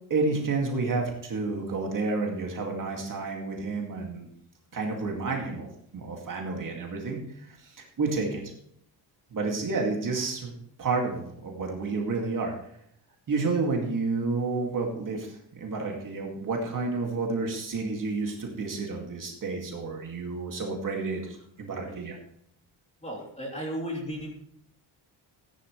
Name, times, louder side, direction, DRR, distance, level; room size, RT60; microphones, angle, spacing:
voice 1, 0.1-4.3 4.7-5.7 5.9-8.4 9.3-10.5 10.8-12.7 13.3-22.2, right 3 dB, 40° right, 0 dB, 2.3 m, -30 dB
voice 2, 23.0-24.3, equal, 15° left, -1 dB, 3.1 m, -35 dB
14.5 x 10.5 x 3.2 m, 0.69 s
cardioid pair, 155°, 47 cm